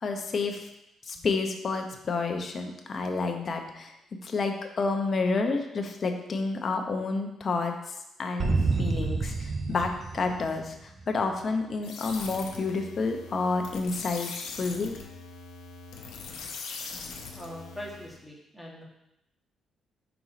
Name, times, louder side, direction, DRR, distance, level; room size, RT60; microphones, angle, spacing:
voice 1, 0.0-0.7 1.0-3.9 4.2-14.3 14.6-15.0, left 3 dB, 45° left, 5 dB, 0.8 m, -30 dB
sound 1, 8.4-11.1, right 3 dB, 35° right, 0.7 m, -29 dB
sound 2, 11.8-18.2, left 4 dB, 90° left, 0.8 m, -41 dB
voice 2, 17.3-18.8, equal, ahead, -3 dB, 1.5 m, -42 dB
4.7 x 4.0 x 4.9 m, 0.85 s
cardioid pair, 90°, 0 cm